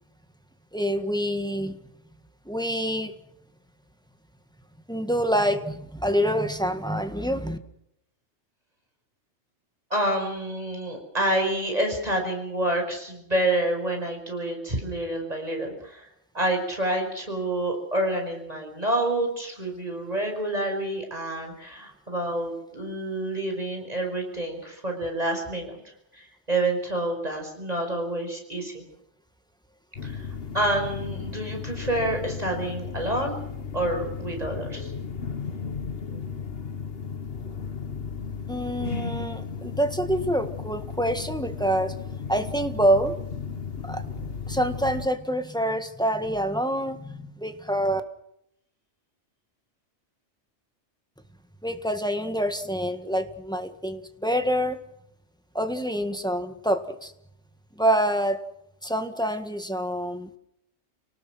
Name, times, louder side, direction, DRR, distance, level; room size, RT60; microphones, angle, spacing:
voice 1, 0.7-1.8 2.4-3.1 4.9-7.6 38.5-41.9 42.3-43.2 43.8-48.0 51.6-54.8 55.5-57.1 57.8-58.4 58.8-60.3, equal, 5° left, 7 dB, 1.7 m, -26 dB
voice 2, 9.9-16.1 16.3-25.8 26.1-28.8 30.0-30.2 30.5-33.4 33.7-34.9, right 1 dB, 35° right, 2 dB, 5.7 m, -28 dB
sound 1, 30.0-45.1, left 6 dB, 55° left, 1.5 m, -35 dB
29.5 x 19.0 x 6.2 m, 0.77 s
omnidirectional pair, 1.2 m